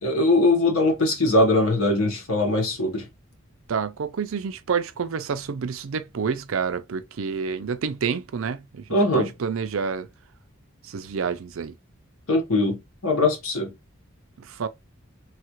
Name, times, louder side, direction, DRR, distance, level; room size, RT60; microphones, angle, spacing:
voice 1, 0.0-3.1 8.9-9.3 12.3-13.7, left 2 dB, 80° left, 1.1 m, -21 dB
voice 2, 3.7-10.1 10.8-11.7 14.4-14.7, right 6 dB, 70° right, 0.5 m, -28 dB
3.2 x 2.4 x 3.0 m
head